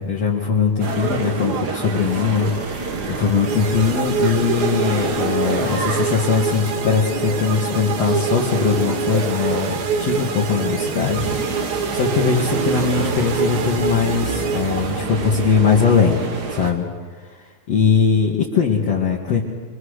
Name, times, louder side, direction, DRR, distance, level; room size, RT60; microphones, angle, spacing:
voice 1, 0.0-16.2 16.5-16.9 17.2-17.3 17.7-19.4, left 6 dB, 50° left, -3 dB, 2.6 m, -20 dB
sound 1, 0.8-16.7, right 4 dB, 60° right, 1.0 m, -28 dB
sound 2, 3.5-15.3, right 5 dB, 80° right, 3.3 m, -26 dB
24.5 x 24.0 x 6.6 m, 1.4 s
omnidirectional pair, 4.2 m